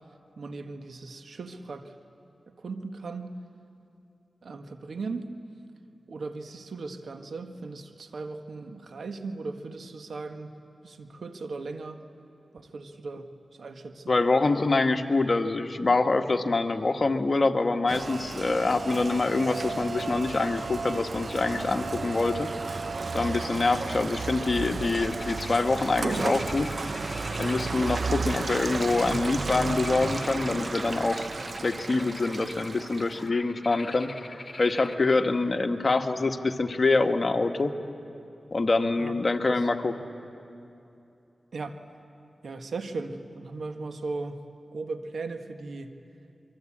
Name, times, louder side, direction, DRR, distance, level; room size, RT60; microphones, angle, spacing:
voice 1, 0.4-1.9 2.6-3.3 4.4-5.2 6.1-10.6 10.8-12.0 12.7-13.3 13.6-14.1 39.0-39.1 39.5-39.6 41.5-41.8 42.4-44.4 44.7-46.0, right 3 dB, 80° right, 7 dB, 1.5 m, -37 dB
voice 2, 14.1-22.5 23.1-26.7 27.4-31.3 31.6-34.1 34.6-37.7 38.5-39.9, left 3 dB, 55° left, 6 dB, 1.5 m, -25 dB
Rain, 17.9-33.3, right 4 dB, 60° right, 0.7 m, -33 dB
sound 1, 24.9-35.0, left 2 dB, 35° left, 2.5 m, -44 dB
24.5 x 23.5 x 8.7 m, 2.7 s
cardioid pair, 40°, 0 cm